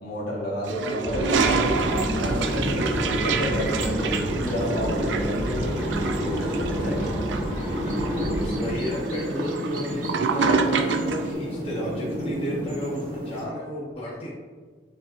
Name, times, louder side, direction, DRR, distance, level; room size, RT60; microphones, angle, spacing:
voice 1, 0.0-7.2, equal, 60° left, -5 dB, 1.3 m, -31 dB
Toilet flush, 0.6-11.3, right 5 dB, 90° right, 0.4 m, -28 dB
sound 1, 1.0-8.7, equal, 5° right, 1.5 m, -30 dB
sound 2, 1.3-13.4, equal, 55° right, 0.7 m, -31 dB
voice 2, 8.3-14.3, equal, 35° left, -6 dB, 0.6 m, -33 dB
6.9 x 2.9 x 2.4 m, 1.5 s
head